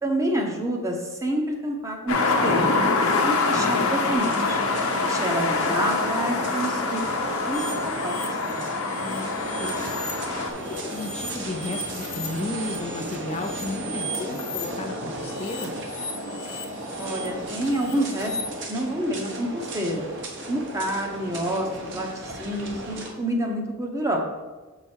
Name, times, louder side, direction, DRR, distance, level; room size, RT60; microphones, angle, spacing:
voice 1, 0.0-4.6 5.0-7.0 7.4-7.6 8.0-8.6 17.0-18.4 18.7-20.1 20.5-24.2, right 1 dB, 15° right, 1 dB, 0.9 m, -28 dB
sound 1, 2.1-10.5, left 3 dB, 80° left, 0.9 m, -25 dB
sound 2, 4.1-23.1, right 1 dB, 55° right, 1.1 m, -35 dB
sound 3, 7.5-10.1 10.4-14.6 15.2-18.4, equal, 55° left, 1.1 m, -38 dB
voice 2, 9.0-9.9 10.7-15.7, left 2 dB, 30° left, 3 dB, 0.4 m, -34 dB
6.7 x 4.8 x 4.4 m, 1.3 s
head